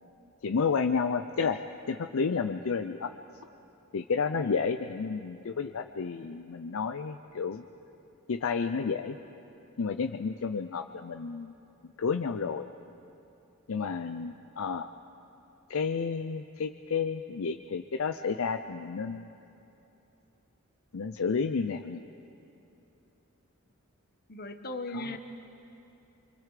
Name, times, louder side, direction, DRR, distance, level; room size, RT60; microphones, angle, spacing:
voice 1, 0.4-1.6 1.9-3.1 3.9-7.6 8.3-9.2 9.8-11.5 11.8-12.7 13.7-14.9 15.7-19.3 20.9-22.0 24.9-25.2, left 5 dB, 65° left, 8 dB, 0.5 m, -31 dB
voice 2, 4.4-4.7 24.3-25.2, left 2 dB, 45° left, 7 dB, 1.2 m, -38 dB
25.0 x 25.0 x 5.0 m, 2.9 s
head